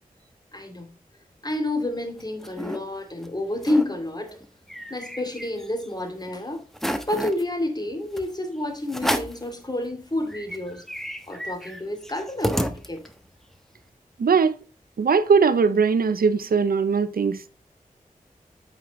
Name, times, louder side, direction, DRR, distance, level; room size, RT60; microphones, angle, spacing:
voice 1, 0.5-0.9 1.4-4.4 4.9-6.6 7.1-10.8 11.3-13.0, left 1 dB, 25° left, 2.4 m, -29 dB
sound 1, 2.0-2.8 3.2-3.3 3.5-3.9 4.3-5.9 6.3-6.4 6.7-7.4 8.2-8.3 8.9-9.5 9.9-10.0 10.3-13.3, equal, ahead, 1.1 m, -31 dB
voice 2, 14.2-14.5 15.0-17.5, right 5 dB, 85° right, 0.6 m, -20 dB
8.3 x 5.8 x 3.1 m
cardioid pair, 40°, 15 cm